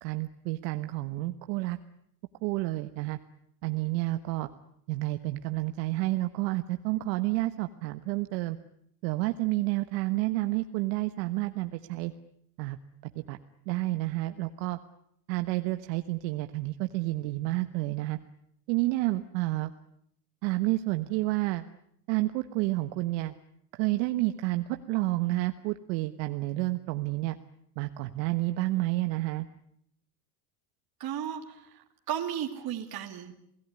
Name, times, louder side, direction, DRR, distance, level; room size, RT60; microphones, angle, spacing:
voice 1, 0.0-1.8 2.4-3.2 3.6-4.5 4.9-8.6 9.0-12.1 12.6-12.8 13.1-13.4 13.7-14.8 15.3-18.2 18.7-19.7 20.4-21.7 22.1-23.3 23.7-27.4 27.8-29.5, right 19 dB, 75° right, 9 dB, 1.3 m, -30 dB
voice 2, 31.0-33.4, right 10 dB, 45° right, 3 dB, 2.8 m, -35 dB
28.0 x 18.0 x 9.7 m, 0.73 s
supercardioid pair, 95°, 50 cm